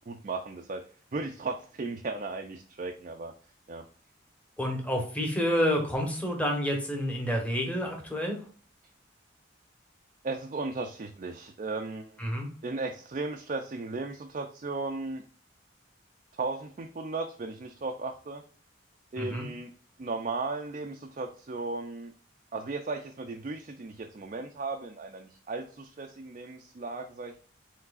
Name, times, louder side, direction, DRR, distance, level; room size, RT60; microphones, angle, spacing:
voice 1, 0.1-0.8 1.1-3.3 3.7-3.8 10.2-12.2 12.6-15.2 16.4-18.4 19.1-19.7 20.0-22.1 22.5-27.4, right 3 dB, 40° right, 3 dB, 0.4 m, -36 dB
voice 2, 4.6-8.4 12.2-12.5 19.2-19.5, equal, 5° left, 1 dB, 1.1 m, -29 dB
4.6 x 3.9 x 2.4 m, 0.43 s
head